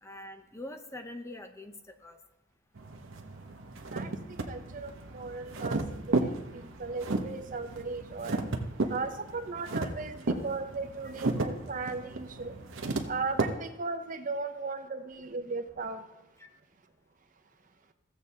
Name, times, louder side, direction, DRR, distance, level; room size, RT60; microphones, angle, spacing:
voice 1, 0.0-2.2 11.0-11.1 16.4-16.5, left 1 dB, 15° left, 0.5 m, -44 dB
sound 1, 2.7-13.4, right 2 dB, 75° right, 0.9 m, -34 dB
voice 2, 4.5-8.4 8.9-12.5 13.1-16.0, right 4 dB, 40° right, 0.6 m, -37 dB
15.5 x 7.6 x 2.8 m
head